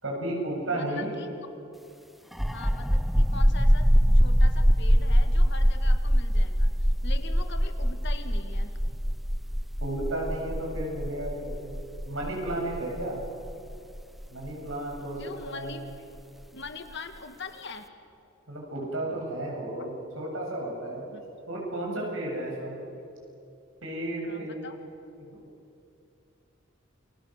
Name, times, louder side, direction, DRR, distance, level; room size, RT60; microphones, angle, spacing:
voice 1, 0.0-1.1 9.8-11.8 12.0-13.2 14.3-15.2 15.4-15.8 18.5-21.1 21.5-22.8 23.8-24.9, right 1 dB, 80° right, -1 dB, 7.7 m, -33 dB
voice 2, 0.7-1.3 2.5-3.9 4.1-8.7 15.2-15.8 16.5-17.9 19.8-19.9 21.1-21.2 24.3-24.8, left 4 dB, 60° left, 7 dB, 1.9 m, -42 dB
sound 1, 2.3-15.7, equal, ahead, 0.8 m, -23 dB
29.0 x 22.5 x 6.6 m, 2.7 s
head